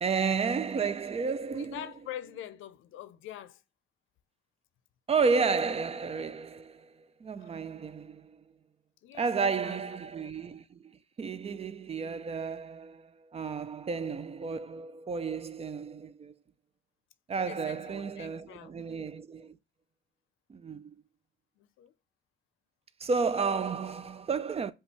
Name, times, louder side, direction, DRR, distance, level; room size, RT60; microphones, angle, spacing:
voice 1, 0.0-1.8 5.1-6.9 7.2-8.4 9.2-10.9 11.2-16.3 17.3-19.6 20.5-20.9 23.0-24.7, right 5 dB, 30° right, 0.4 m, -32 dB
voice 2, 1.5-3.6 7.4-7.6 9.0-9.8 17.4-18.7 21.6-21.9, left 12 dB, 80° left, 0.5 m, -45 dB
5.2 x 2.4 x 3.0 m
cardioid pair, 90°, 20 cm